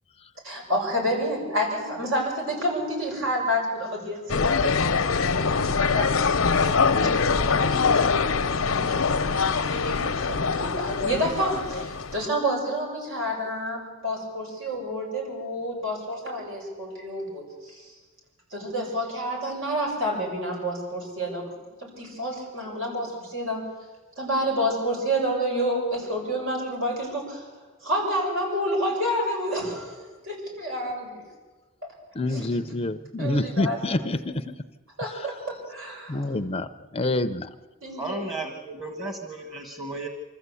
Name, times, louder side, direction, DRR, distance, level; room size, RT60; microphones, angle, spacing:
voice 1, 0.4-17.9 18.5-21.5 21.8-23.7 24.2-27.5 27.8-31.2 32.3-32.5 33.2-34.1 35.0-36.2 37.8-38.2, equal, 75° right, -1 dB, 7.4 m, -29 dB
sound 1, 4.3-12.3, left 5 dB, 90° left, 0.8 m, -23 dB
voice 2, 32.2-34.4 36.1-36.7 36.9-37.5, left 2 dB, 30° left, 10 dB, 0.6 m, -27 dB
voice 3, 37.9-40.1, right 2 dB, 20° right, 4 dB, 1.5 m, -34 dB
25.0 x 14.0 x 8.4 m, 1.3 s
head